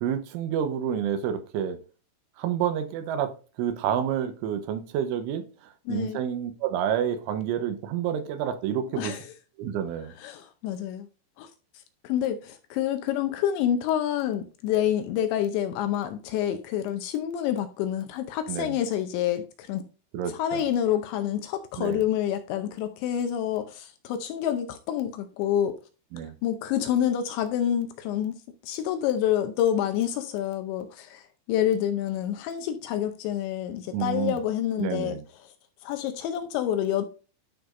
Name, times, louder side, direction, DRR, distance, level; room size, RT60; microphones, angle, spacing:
voice 1, 0.0-1.8 2.4-5.5 5.9-9.1 9.6-10.1 18.5-18.8 20.1-20.6 21.8-22.0 26.1-26.4 33.9-34.4 34.8-35.2, right 9 dB, 80° right, 3.3 m, -29 dB
voice 2, 5.9-6.2 8.9-9.3 10.2-11.1 11.4-11.5 12.0-19.8 20.3-25.8 26.4-28.4 28.6-31.2 31.5-35.2 35.4-35.5 35.8-37.1, left 10 dB, 80° left, 2.8 m, -27 dB
11.5 x 5.1 x 2.6 m
omnidirectional pair, 5.7 m